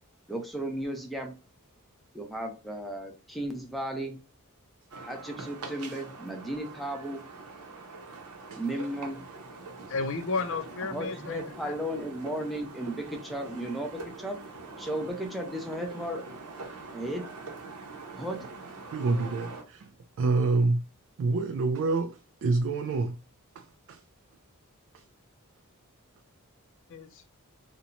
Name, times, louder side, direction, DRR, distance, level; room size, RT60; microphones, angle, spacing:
voice 1, 0.3-1.3 2.1-4.2 5.0-7.2 8.5-9.2 10.9-14.4 14.8-16.2 16.9-17.3 18.2-18.5, right 1 dB, ahead, 0.5 m, -35 dB
sound 1, 4.9-19.6, right 3 dB, 85° right, 0.7 m, -44 dB
voice 2, 9.9-11.7 26.9-27.2, left 4 dB, 60° left, 0.4 m, -33 dB
voice 3, 18.9-19.9 20.2-20.8 21.2-23.2 23.6-23.7 23.9-24.0, right 3 dB, 60° right, 0.3 m, -27 dB
2.8 x 2.1 x 2.5 m
head